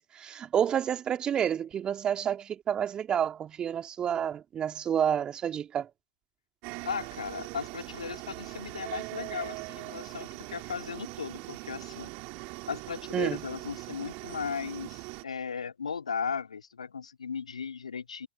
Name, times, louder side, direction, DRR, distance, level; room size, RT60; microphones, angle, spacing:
voice 1, 0.0-5.9 13.1-13.4, right 9 dB, 25° right, 2.6 m, -29 dB
sound 1, 6.6-15.2, right 28 dB, 45° right, 4.7 m, -41 dB
voice 2, 6.8-12.1 12.7-18.3, left 6 dB, 80° left, 3.9 m, -36 dB
figure-of-eight pair, 100°, 3 cm